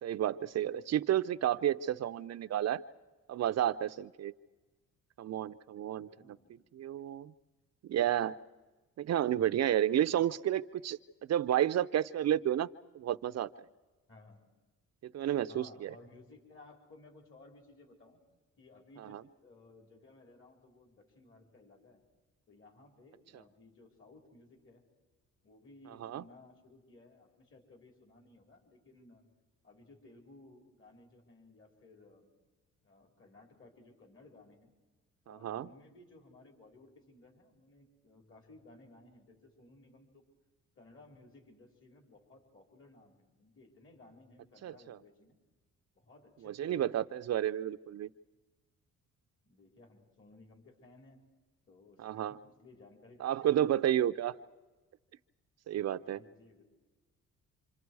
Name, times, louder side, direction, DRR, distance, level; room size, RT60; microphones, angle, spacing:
voice 1, 0.0-2.8 3.3-4.3 5.2-6.4 6.7-7.3 7.9-8.3 9.0-11.0 11.3-12.7 12.9-13.5 15.1-15.9 19.0-19.2 26.0-26.2 35.3-35.7 44.6-45.0 46.4-48.1 52.0-52.4 53.2-54.3 55.7-56.2, right 11 dB, 60° right, 12 dB, 0.6 m, -31 dB
voice 2, 6.1-6.7 14.1-14.5 15.5-18.2 18.6-22.0 22.5-24.9 25.4-29.2 29.6-32.3 32.8-34.7 35.2-40.3 40.8-45.4 45.9-47.0 49.4-51.2 51.7-53.8 56.0-56.6, left 2 dB, 45° left, 3 dB, 4.6 m, -59 dB
28.0 x 27.0 x 4.8 m, 1.2 s
cardioid pair, 90°, 30 cm